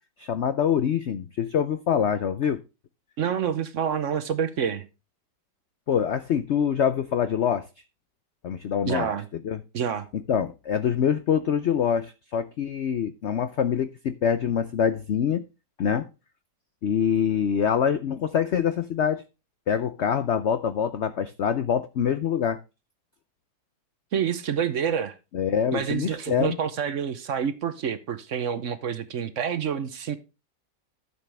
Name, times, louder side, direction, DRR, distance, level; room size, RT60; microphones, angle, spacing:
voice 1, 0.2-2.6 5.9-7.7 8.4-9.1 9.4-9.6 10.3-15.4 15.8-16.1 16.8-19.2 19.7-22.6 25.3-26.6, left 8 dB, 75° left, 0.6 m, -25 dB
voice 2, 3.2-4.9 8.9-9.3 9.7-10.1 24.1-25.2 25.7-30.2, right 8 dB, 55° right, 1.0 m, -28 dB
12.5 x 7.1 x 3.3 m
omnidirectional pair, 1.9 m